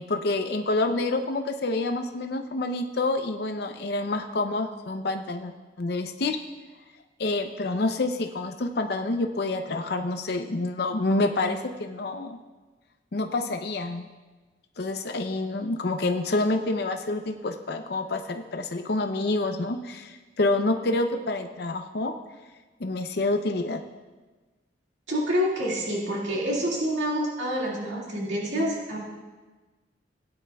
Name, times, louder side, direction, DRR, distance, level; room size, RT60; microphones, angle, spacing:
voice 1, 0.0-5.5 5.8-6.4 7.2-12.4 13.1-14.1 14.8-22.1 22.8-23.8, left 2 dB, 60° left, 5 dB, 0.6 m, -27 dB
voice 2, 25.1-29.0, equal, 85° right, -4 dB, 2.0 m, -27 dB
17.0 x 9.9 x 2.3 m, 1.3 s
head